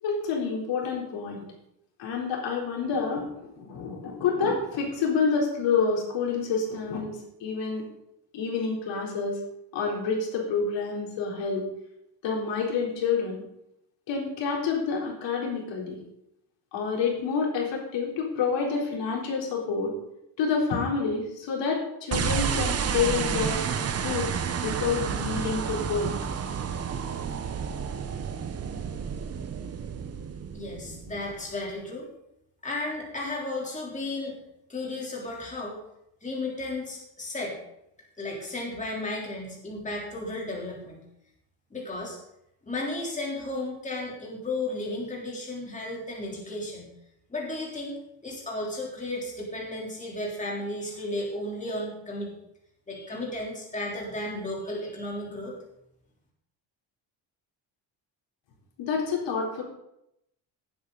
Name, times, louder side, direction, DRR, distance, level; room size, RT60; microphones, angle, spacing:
voice 1, 0.0-1.4 2.0-3.3 3.5-7.9 8.3-9.4 9.7-11.7 12.2-13.4 14.1-16.0 16.7-19.9 20.4-23.6 24.0-24.3 24.6-26.1 58.8-59.6, left 5 dB, 85° left, -1 dB, 3.9 m, -28 dB
sound 1, 22.1-31.5, right 7 dB, 35° right, 1.0 m, -30 dB
voice 2, 30.5-32.1 32.6-34.4 34.7-35.8 36.2-37.6 38.2-41.0 41.7-42.2 42.6-46.9 47.3-47.9 48.2-52.3 52.9-55.6, left 2 dB, 15° left, -3 dB, 3.4 m, -34 dB
18.0 x 8.0 x 4.0 m, 0.80 s
cardioid pair, 155°, 43 cm